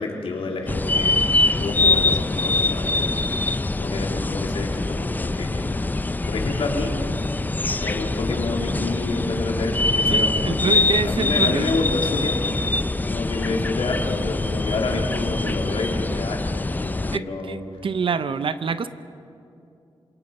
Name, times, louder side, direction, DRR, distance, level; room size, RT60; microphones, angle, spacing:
voice 1, 0.0-3.1 3.8-5.7 6.2-6.9 7.8-12.5 13.0-17.6, left 3 dB, 80° left, 0 dB, 3.3 m, -29 dB
sound 1, 0.7-17.2, left 2 dB, 20° left, 0.5 m, -24 dB
voice 2, 10.1-11.7 17.1-18.9, right 6 dB, 65° right, 12 dB, 0.7 m, -26 dB
27.5 x 18.5 x 5.4 m, 2.6 s
cardioid pair, 65°, 10 cm